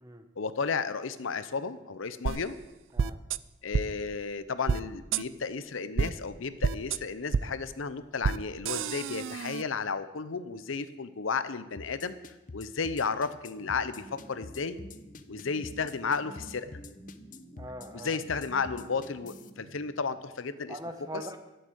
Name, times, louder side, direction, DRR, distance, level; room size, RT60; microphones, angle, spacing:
voice 1, 0.4-2.5 3.6-12.2 12.5-14.8 15.3-16.7 17.9-20.8 21.1-21.2, left 5 dB, 75° left, 12 dB, 0.7 m, -33 dB
sound 1, 2.3-2.4 3.0-3.4 3.7-3.8 4.7-4.8 5.1-5.2 6.0-6.1 6.6-7.0 7.3-7.4 8.2-8.4 8.7-9.6, right 6 dB, 70° right, 0.4 m, -28 dB
sound 2, 11.8-19.5, left 3 dB, 40° left, 0.6 m, -46 dB
sound 3, 13.6-20.3, right 1 dB, 20° left, 3.3 m, -51 dB
voice 2, 17.6-18.4 20.7-21.5, right 1 dB, 20° right, 7 dB, 1.0 m, -42 dB
12.0 x 7.9 x 8.0 m, 1.0 s
head